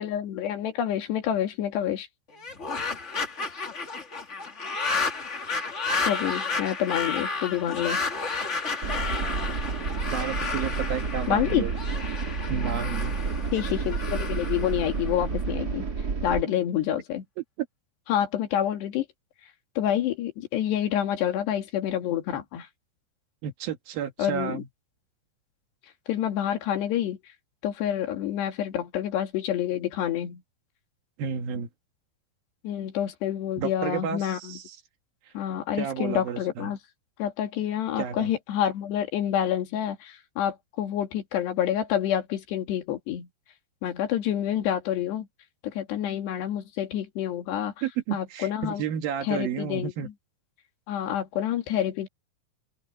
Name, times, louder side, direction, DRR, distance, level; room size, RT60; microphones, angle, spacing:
voice 1, 0.0-2.1 6.1-8.0 11.3-11.7 13.5-15.8 16.2-17.2 18.1-19.1 19.8-22.7 24.2-24.6 26.1-27.2 27.6-30.4 32.6-34.6 35.3-36.8 37.2-43.3 43.8-45.3 45.6-47.7 48.1-48.8 49.2-50.1 50.9-52.1, left 10 dB, 85° left, 4.3 m, -28 dB
sound 1, 2.3-15.5, left 4 dB, 55° left, 0.7 m, -32 dB
sound 2, 8.8-16.4, right 5 dB, 35° right, 1.7 m, -30 dB
voice 2, 10.1-11.7 12.5-13.2 17.4-17.5 23.4-24.7 31.2-31.7 33.6-34.8 35.8-36.7 38.0-38.3 47.8-50.1, right 8 dB, 65° right, 3.2 m, -31 dB
open air
omnidirectional pair, 4.7 m